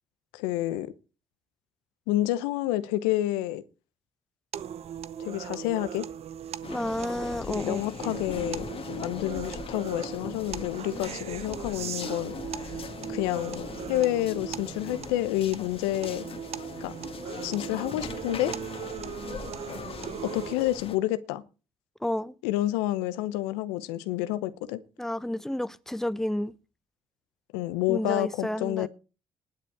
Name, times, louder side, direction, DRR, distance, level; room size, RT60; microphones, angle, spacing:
voice 1, 0.3-0.9 2.1-3.6 5.2-6.1 7.5-12.6 13.1-16.2 16.8-16.9 17.4-18.5 20.3-21.4 22.4-24.8 27.5-28.9, left 15 dB, 80° left, 0.8 m, -29 dB
sound 1, 4.5-20.5, right 9 dB, 55° right, 0.8 m, -39 dB
sound 2, 6.6-21.0, left 6 dB, 45° left, 1.8 m, -40 dB
voice 2, 6.7-7.8 22.0-22.3 25.0-26.5 27.9-28.9, left 1 dB, 5° left, 0.9 m, -31 dB
19.5 x 6.8 x 4.7 m
hypercardioid pair, 50°, 13 cm